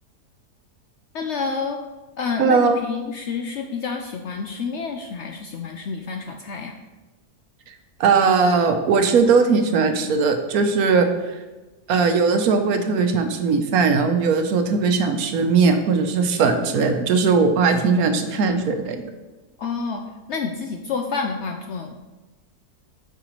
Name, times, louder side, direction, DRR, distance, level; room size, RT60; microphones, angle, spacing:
voice 1, 1.1-1.8 2.2-6.8 19.6-20.0 20.3-22.0, left 5 dB, 70° left, 4 dB, 0.7 m, -29 dB
voice 2, 2.4-2.8 8.0-11.1 11.9-19.0, right 4 dB, 75° right, 7 dB, 1.2 m, -19 dB
8.8 x 5.7 x 3.0 m, 1.2 s
omnidirectional pair, 1.6 m